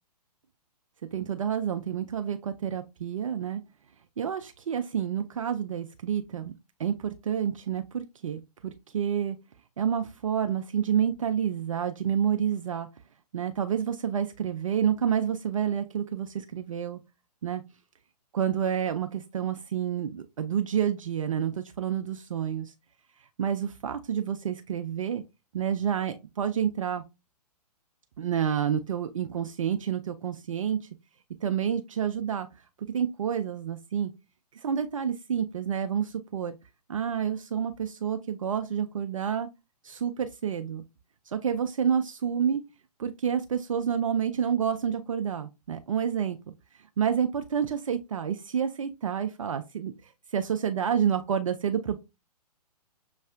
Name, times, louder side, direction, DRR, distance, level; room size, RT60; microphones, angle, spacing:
voice 1, 1.1-3.6 4.2-6.5 6.8-9.4 9.8-12.9 13.3-17.0 17.4-17.6 18.3-22.7 23.4-25.2 25.5-27.0 28.2-30.8 31.4-32.5 32.9-34.1 34.5-36.6 36.9-39.5 39.8-40.8 41.3-42.6 43.0-46.4 47.0-52.0, right 8 dB, 50° right, 0.4 m, -29 dB
6.4 x 2.3 x 2.3 m
figure-of-eight pair, 120°, 21 cm